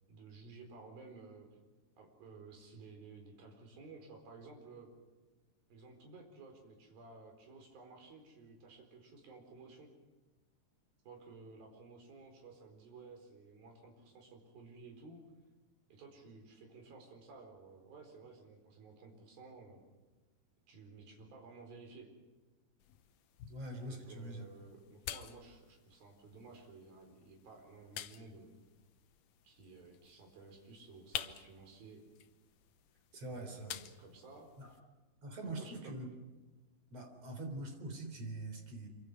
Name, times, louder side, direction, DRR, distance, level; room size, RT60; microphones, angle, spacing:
voice 1, 0.1-1.5 2.0-4.9 5.7-9.9 11.0-15.3 15.9-19.8 20.7-22.1 23.9-28.5 29.4-32.0 33.1-34.5 35.5-35.8, right 4 dB, 60° right, 2 dB, 6.1 m, -55 dB
sound 1, 22.8-34.8, left 11 dB, 70° left, 2.1 m, -50 dB
voice 2, 23.5-24.4 33.1-33.8 34.6-34.7 35.2-36.1 36.9-38.9, right 2 dB, 40° right, 5 dB, 4.5 m, -44 dB
26.5 x 25.0 x 6.2 m, 1.2 s
omnidirectional pair, 4.7 m